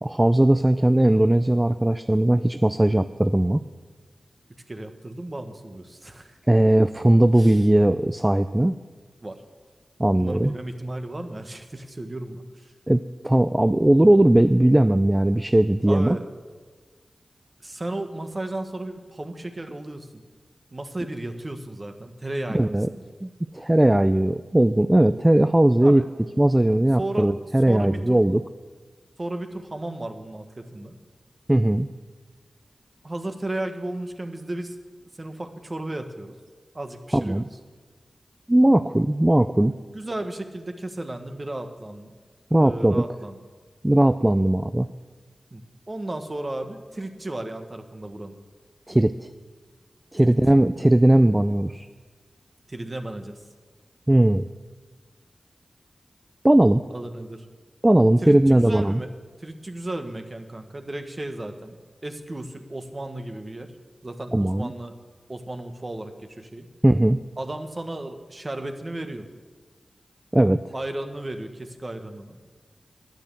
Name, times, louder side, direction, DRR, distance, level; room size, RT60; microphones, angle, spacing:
voice 1, 0.0-3.6 6.5-8.8 10.0-10.5 12.9-16.2 22.5-22.9 23.2-26.0 26.4-28.4 31.5-31.9 37.1-37.4 38.5-39.7 42.5-43.1 43.8-44.9 48.9-49.3 50.1-51.9 54.1-54.5 56.4-56.9 57.8-59.0 64.3-64.7 66.8-67.2 70.3-70.6, right 1 dB, 20° right, 11 dB, 0.4 m, -19 dB
voice 2, 4.7-6.4 7.4-7.6 9.2-9.4 10.2-12.7 15.9-16.2 17.6-20.2 20.7-23.0 25.8-26.1 27.0-27.3 27.7-28.2 29.2-30.9 33.0-34.8 35.2-36.4 36.7-37.4 39.9-42.1 42.6-43.4 45.5-48.4 50.2-50.3 52.7-53.4 56.9-57.5 58.2-59.1 59.4-61.8 62.0-63.7 64.0-64.9 65.3-66.7 67.4-69.3 70.7-72.4, right 1 dB, 35° right, 6 dB, 1.4 m, -34 dB
10.5 x 10.0 x 7.5 m, 1.4 s
cardioid pair, 50°, 0 cm